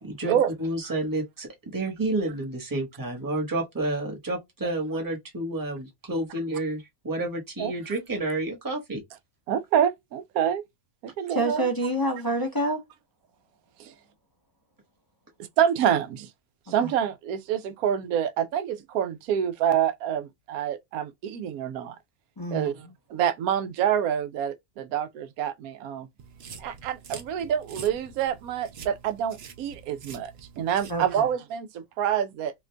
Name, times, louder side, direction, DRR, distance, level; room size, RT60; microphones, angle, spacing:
voice 1, 0.0-9.0, right 2 dB, 15° right, 0.9 m, -30 dB
voice 2, 9.5-10.6 11.0-11.7 13.8-13.9 15.6-16.3 16.7-22.0 22.5-26.1 26.6-30.3 30.6-32.5, right 9 dB, 85° right, 1.0 m, -27 dB
voice 3, 11.3-12.8 22.4-22.7 30.9-31.3, right 1 dB, 25° left, 0.5 m, -27 dB
sound 1, 26.2-31.3, right 6 dB, 55° right, 0.8 m, -46 dB
2.9 x 2.5 x 3.3 m
omnidirectional pair, 1.5 m